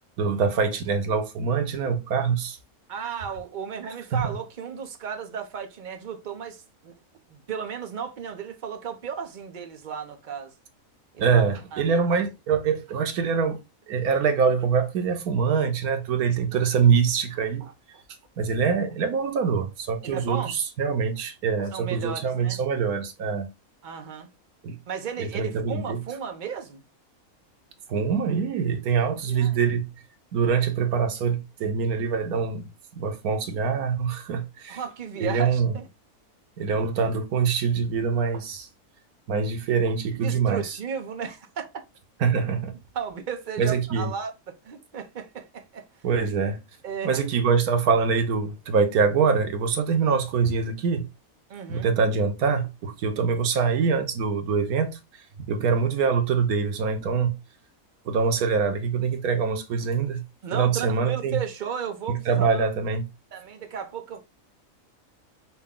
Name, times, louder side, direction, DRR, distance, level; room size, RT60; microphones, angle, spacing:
voice 1, 0.2-2.6 4.1-4.3 11.2-13.6 13.9-18.0 18.4-23.5 24.6-24.8 25.2-26.0 27.9-29.9 30.3-34.8 35.2-35.8 36.6-38.7 39.3-40.8 42.2-42.8 43.6-44.1 46.0-46.6 47.0-51.1 51.7-55.0 55.5-57.3 58.1-60.2 60.5-61.4 62.1-63.0, right 6 dB, 85° right, 1.3 m, -24 dB
voice 2, 2.9-6.9 7.3-10.5 11.1-11.4 11.7-12.0 20.0-20.5 21.7-22.6 23.8-24.3 24.9-26.8 29.3-29.6 34.7-35.9 40.1-41.8 42.9-45.8 46.8-47.1 51.5-51.9 60.4-62.7 63.3-64.2, right 7 dB, 40° right, 0.8 m, -34 dB
5.8 x 2.2 x 3.7 m
omnidirectional pair, 1.5 m